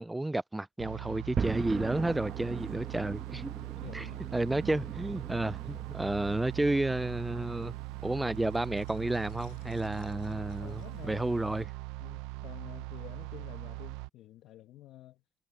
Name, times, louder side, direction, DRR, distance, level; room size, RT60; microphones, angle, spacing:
voice 1, 0.0-3.5 3.9-4.1 4.3-7.7 8.0-11.7, right 2 dB, 10° right, 0.3 m, -31 dB
sound 1, 0.8-14.1, right 22 dB, 90° right, 0.6 m, -41 dB
sound 2, 1.4-11.6, right 6 dB, 35° right, 1.8 m, -42 dB
voice 2, 3.3-4.3 10.2-11.2 12.0-15.2, left 14 dB, 70° left, 1.2 m, -50 dB
sound 3, 5.6-7.8 8.1-11.2, left 25 dB, 85° left, 7.0 m, -67 dB
supercardioid pair, 95°, 0 cm